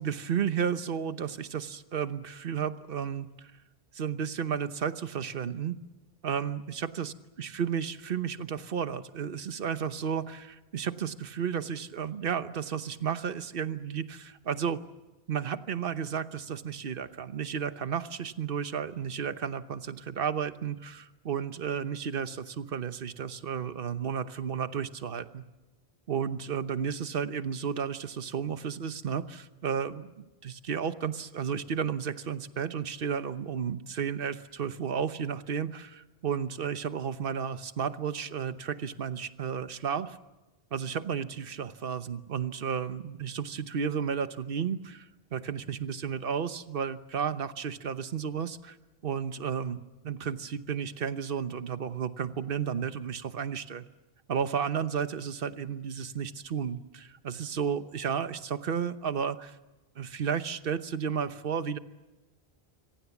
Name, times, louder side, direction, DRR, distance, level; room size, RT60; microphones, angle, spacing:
voice 1, 0.0-3.5 3.9-5.8 6.2-7.1 7.4-14.8 15.3-25.4 26.1-40.2 40.7-48.8 49.0-53.9 54.3-59.6 60.0-61.8, right 7 dB, 60° right, 11 dB, 1.2 m, -33 dB
26.0 x 24.0 x 7.2 m, 1.1 s
omnidirectional pair, 1.1 m